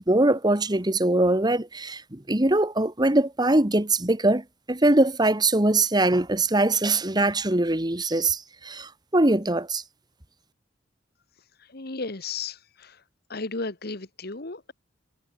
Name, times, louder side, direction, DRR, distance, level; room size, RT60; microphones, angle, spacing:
voice 1, 0.0-9.8, right 2 dB, 20° right, 1.8 m, -22 dB
voice 2, 11.7-13.0 13.3-14.7, left 3 dB, 55° left, 1.7 m, -34 dB
head